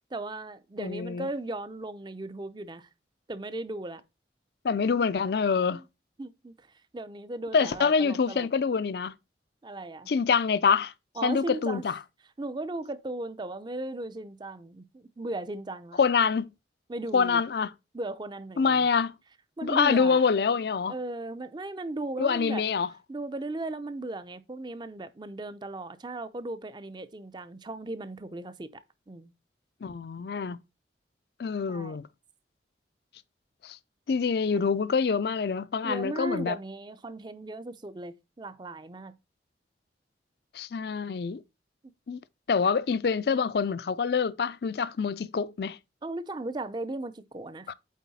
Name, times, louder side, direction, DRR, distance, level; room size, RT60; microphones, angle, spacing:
voice 1, 0.1-2.9 3.3-4.0 5.7-5.8 6.2-6.7 6.9-8.5 9.6-10.1 11.2-11.8 12.4-16.0 16.9-17.4 17.9-18.9 19.6-20.2 20.9-22.6 23.1-28.8 29.1-29.3 31.7-32.0 35.8-39.2 46.0-47.7, right 2 dB, 25° right, 0.5 m, -37 dB
voice 2, 0.8-1.3 4.6-5.8 7.5-9.1 10.1-10.9 11.2-12.0 16.0-16.5 17.1-17.7 18.6-19.1 19.6-20.9 22.2-22.9 29.8-30.6 31.4-32.1 33.6-33.8 34.1-36.6 40.5-41.4 42.1-42.2 42.5-45.8 47.7-47.8, left 5 dB, 60° left, 0.4 m, -26 dB
8.4 x 4.0 x 4.1 m
head